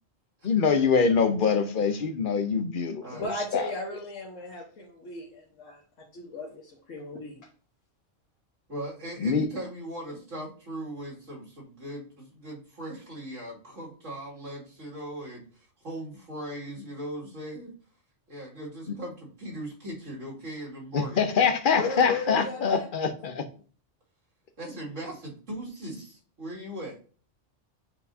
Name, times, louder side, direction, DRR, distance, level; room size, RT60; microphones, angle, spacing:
voice 1, 0.4-3.6 9.2-9.5 18.9-19.0 20.9-23.4, left 5 dB, 50° left, 0.9 m, -24 dB
voice 2, 3.1-7.5 21.7-22.9, left 3 dB, 80° left, 1.6 m, -35 dB
voice 3, 8.7-17.7 18.3-21.3 22.3-22.4 24.6-27.0, right 1 dB, 80° right, 2.8 m, -39 dB
10.0 x 4.6 x 2.7 m
omnidirectional pair, 1.3 m